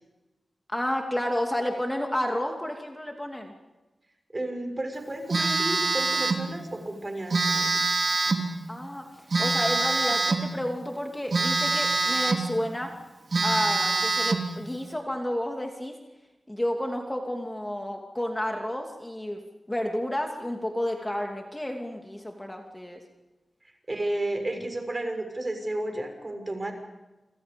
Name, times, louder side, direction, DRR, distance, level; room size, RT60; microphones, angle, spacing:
voice 1, 0.7-3.5 8.7-9.1 9.4-12.9 13.4-16.0 16.5-19.4 19.7-23.0, left 1 dB, 15° left, 2 dB, 2.7 m, -31 dB
voice 2, 4.3-7.7 23.9-26.7, right 1 dB, 30° right, 5 dB, 6.2 m, -32 dB
Telephone, 5.3-6.5 7.3-8.5 9.3-10.5 11.3-12.5 12.9-13.0 13.3-14.5, right 3 dB, 60° right, 3.2 m, -25 dB
29.0 x 27.0 x 5.3 m, 1.1 s
wide cardioid pair, 75°, 0 cm